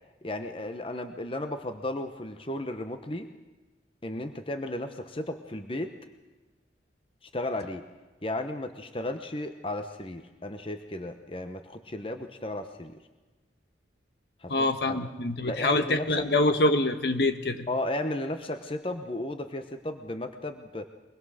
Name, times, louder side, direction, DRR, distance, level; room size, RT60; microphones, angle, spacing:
voice 1, 0.2-3.3 4.0-5.9 7.2-7.8 8.2-13.0 14.4-15.0 15.4-16.3 17.7-20.9, left 1 dB, 30° left, 7 dB, 1.0 m, -34 dB
voice 2, 14.5-17.7, left 2 dB, 65° left, 8 dB, 1.5 m, -25 dB
23.5 x 21.0 x 6.5 m, 1.2 s
head